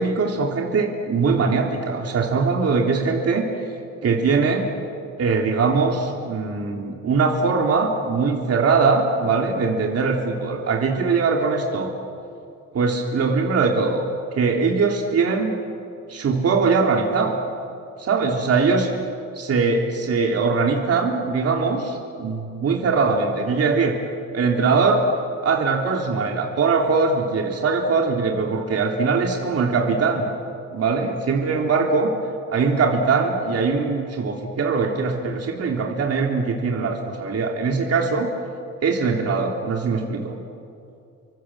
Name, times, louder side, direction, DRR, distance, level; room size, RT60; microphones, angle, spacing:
voice 1, 0.0-3.4 4.0-4.7 5.2-11.9 12.7-14.0 14.3-15.5 16.1-17.4 18.0-18.9 19.3-24.0 24.3-25.0 25.4-30.3 30.7-32.1 32.5-38.3 38.8-40.4, right 4 dB, 55° right, 1 dB, 3.3 m, -21 dB
30.0 x 25.0 x 7.8 m, 2.5 s
cardioid pair, 90°, 30 cm